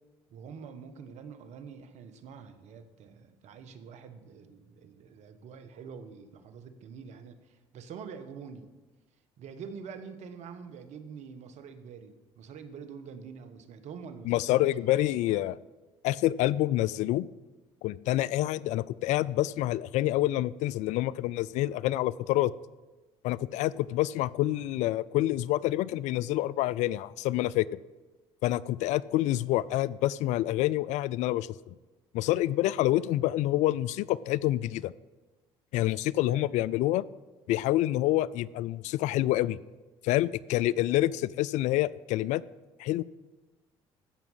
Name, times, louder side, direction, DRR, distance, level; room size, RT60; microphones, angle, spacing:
voice 1, 0.3-8.7 9.4-14.7 36.3-36.5, right 6 dB, 65° right, 10 dB, 1.2 m, -46 dB
voice 2, 14.3-15.6 16.0-17.3 17.8-22.5 23.2-27.7 28.4-31.5 32.1-34.9 35.7-37.0 37.5-39.6 40.0-42.4 42.8-43.0, left 15 dB, 70° left, 20 dB, 0.4 m, -27 dB
14.5 x 6.0 x 5.6 m, 1.2 s
hypercardioid pair, 65°, 13 cm